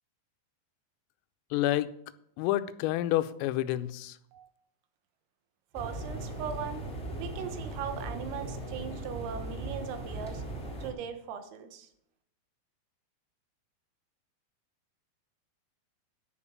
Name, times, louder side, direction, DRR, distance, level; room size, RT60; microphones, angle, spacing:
voice 1, 1.5-1.9 2.4-4.2, left 14 dB, 85° left, 3.3 m, -29 dB
sound 1, 5.7-10.9, right 1 dB, ahead, 2.1 m, -38 dB
voice 2, 5.7-6.9 7.1-10.4 10.8-11.9, right 7 dB, 85° right, 3.9 m, -39 dB
10.0 x 7.0 x 8.5 m
omnidirectional pair, 5.9 m